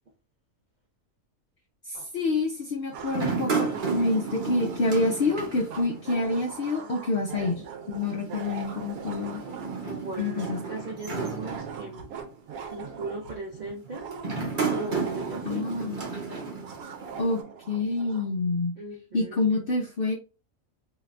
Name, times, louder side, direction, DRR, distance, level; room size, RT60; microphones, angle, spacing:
voice 1, 1.9-9.4 10.2-10.6 15.5-16.1 17.2-17.4 17.7-18.7 19.1-20.1, left 2 dB, 60° left, 1 dB, 0.6 m, -27 dB
sound 1, 1.9-2.1 2.9-18.3, right 6 dB, 85° right, 1.1 m, -42 dB
sound 2, 3.1-6.5 6.7-6.8 8.0-12.2 12.9-13.2 14.1-17.4, right 5 dB, 45° right, 0.8 m, -33 dB
voice 2, 9.9-12.1 12.7-14.0 14.7-15.7 18.8-19.4, right 2 dB, 65° right, 0 dB, 0.4 m, -37 dB
3.2 x 2.8 x 2.5 m, 0.33 s
omnidirectional pair, 1.5 m